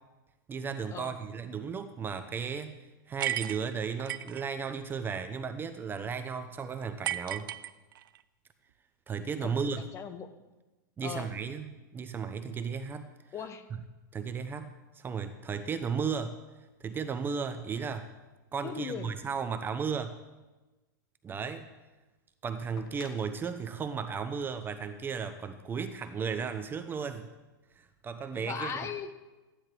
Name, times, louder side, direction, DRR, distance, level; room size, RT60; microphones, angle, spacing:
voice 1, 0.5-2.8 3.1-7.5 9.1-9.8 11.0-13.1 14.1-16.4 16.8-18.1 18.5-20.2 21.2-21.7 22.4-27.3 27.8-28.7, right 6 dB, 20° right, 9 dB, 0.7 m, -35 dB
sound 1, 3.2-4.4 7.0-8.2, right 12 dB, 80° right, 0.5 m, -34 dB
voice 2, 9.4-10.3 11.0-11.3 13.3-13.7 18.6-19.2 28.3-29.1, left 6 dB, 25° left, 11 dB, 0.9 m, -38 dB
sound 2, 22.7-25.6 26.8-26.9, left 5 dB, 80° left, 1.6 m, -56 dB
14.0 x 10.0 x 4.5 m, 1.2 s
hypercardioid pair, 130°, 11 cm